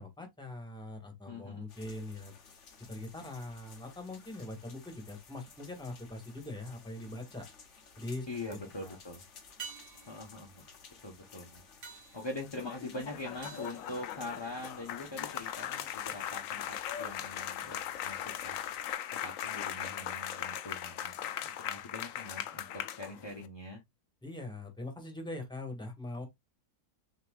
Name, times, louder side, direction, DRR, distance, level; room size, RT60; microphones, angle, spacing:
voice 1, 0.0-2.4 2.9-7.5 8.0-9.0 24.2-26.3, left 2 dB, 5° left, 1.2 m, -42 dB
voice 2, 1.3-1.7 8.3-9.2 10.1-10.6 11.0-11.6 12.1-18.6 19.1-23.8, left 2 dB, 20° left, 0.8 m, -43 dB
sound 1, 1.7-18.9, left 5 dB, 50° left, 1.3 m, -56 dB
sound 2, 7.4-7.9 9.6-14.8 19.2-19.3, right 6 dB, 70° right, 2.2 m, -51 dB
sound 3, 12.5-23.5, left 10 dB, 70° left, 0.9 m, -39 dB
6.7 x 3.0 x 2.3 m
omnidirectional pair, 1.7 m